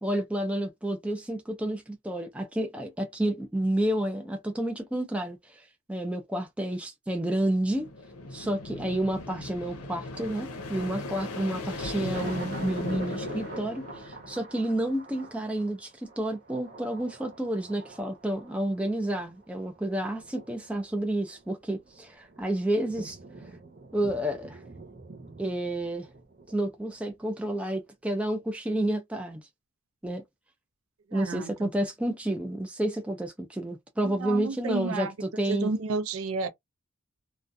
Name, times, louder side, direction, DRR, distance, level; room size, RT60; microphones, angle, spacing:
voice 1, 0.0-7.9 8.3-23.2 23.9-24.6 25.4-26.1 26.5-29.5 30.0-30.2 31.1-35.7, right 1 dB, 5° right, 0.3 m, -30 dB
sound 1, 7.7-14.4, left 2 dB, 80° left, 0.7 m, -37 dB
Thunder, 10.2-27.3 27.7-27.8, right 3 dB, 40° right, 0.8 m, -48 dB
voice 2, 31.1-31.7 34.0-35.1 35.5-36.5, right 3 dB, 70° right, 0.4 m, -32 dB
2.4 x 2.2 x 2.5 m
head